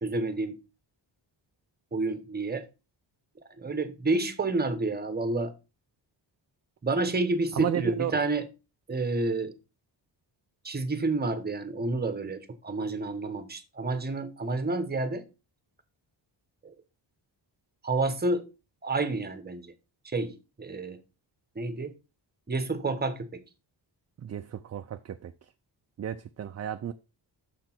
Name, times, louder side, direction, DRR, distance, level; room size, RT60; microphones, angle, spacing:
voice 1, 0.0-0.6 1.9-2.6 3.6-5.5 6.8-8.5 8.9-9.5 10.6-15.3 17.8-18.5 18.8-19.7 20.0-21.0 21.6-21.9 22.5-23.4, right 2 dB, 20° right, 0.9 m, -29 dB
voice 2, 7.6-8.1 24.2-25.3 26.0-26.9, right 10 dB, 35° right, 0.4 m, -32 dB
6.5 x 5.9 x 4.4 m
wide cardioid pair, 140°, 45 cm